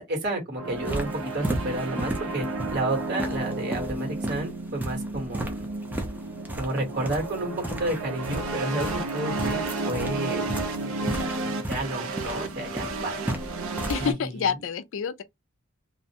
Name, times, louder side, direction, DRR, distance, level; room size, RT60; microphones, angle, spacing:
voice 1, 0.0-2.4 2.7-5.7 6.6-10.5 10.8-13.2 14.0-14.1, right 2 dB, 50° right, 1.4 m, -31 dB
sound 1, 0.6-14.1, right 2 dB, 70° right, 0.5 m, -32 dB
sound 2, 0.7-14.1, right 1 dB, 10° right, 0.4 m, -35 dB
voice 2, 13.9-15.2, left 6 dB, 60° left, 0.3 m, -28 dB
2.5 x 2.1 x 2.8 m
head